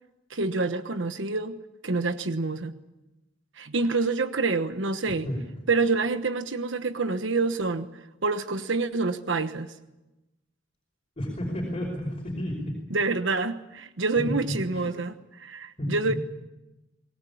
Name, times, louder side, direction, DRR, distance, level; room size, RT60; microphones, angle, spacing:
voice 1, 0.3-1.6 1.8-2.7 3.6-5.3 5.7-7.9 8.2-9.7 12.9-16.2, right 3 dB, 70° right, 10 dB, 1.1 m, -27 dB
voice 2, 11.2-12.7 14.2-14.3 14.7-14.8 15.8-16.1, equal, 30° left, -1 dB, 5.4 m, -31 dB
23.5 x 19.5 x 8.6 m, 1.0 s
head